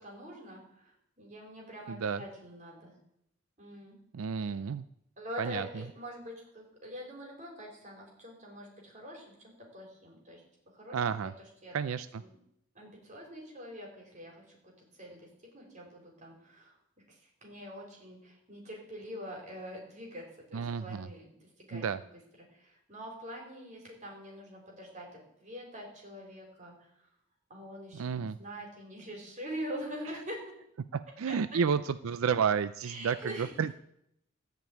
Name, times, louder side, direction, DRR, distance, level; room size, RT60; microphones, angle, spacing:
voice 1, 0.0-2.9 3.6-4.0 5.2-10.4 10.7-11.0 11.6-11.8 12.2-12.3 12.7-14.6 15.0-16.7 17.1-20.2 20.5-22.1 22.5-25.1 25.4-26.7 27.5-30.4 31.3-31.6 32.8-33.5, equal, 35° right, -1 dB, 4.0 m, -44 dB
voice 2, 1.9-2.2 4.1-4.8 5.4-5.8 10.9-11.3 11.7-12.2 20.5-21.1 21.7-22.0 27.9-28.4 30.9-33.7, right 6 dB, 90° right, 13 dB, 0.4 m, -31 dB
14.0 x 5.4 x 9.1 m, 0.77 s
head